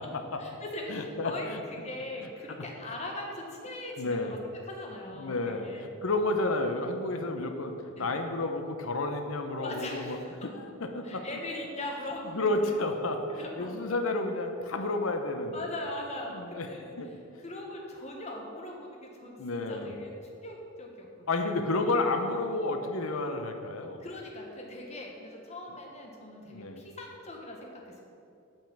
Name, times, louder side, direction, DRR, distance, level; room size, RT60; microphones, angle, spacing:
voice 1, 0.4-1.6 1.8-4.4 4.6-5.9 8.0-8.1 9.6-10.5 11.0-12.5 13.3-13.8 15.5-16.8 17.4-21.5 24.0-28.0, left 1 dB, 30° left, 0 dB, 1.3 m, -40 dB
voice 2, 0.9-1.6 2.2-2.6 4.0-4.3 5.2-10.2 10.4-11.2 12.3-15.7 16.3-17.1 19.4-19.9 21.3-24.1 26.5-26.8, left 2 dB, 75° left, 5 dB, 0.9 m, -31 dB
8.8 x 5.5 x 7.3 m, 2.6 s
head